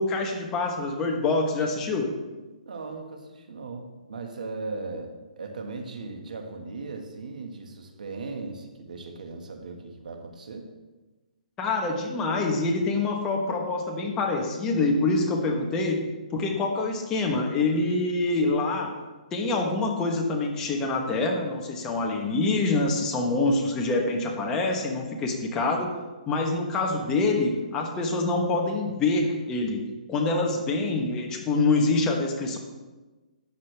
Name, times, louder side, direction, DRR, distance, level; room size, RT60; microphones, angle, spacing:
voice 1, 0.0-2.1 11.6-16.0 16.3-18.9 19.3-25.9 26.3-29.8 30.1-32.6, left 3 dB, 15° left, 1 dB, 1.3 m, -25 dB
voice 2, 2.7-5.1 5.4-10.7, right 3 dB, 75° right, 4 dB, 1.8 m, -38 dB
13.0 x 8.5 x 3.5 m, 1.2 s
hypercardioid pair, 160°, 4 cm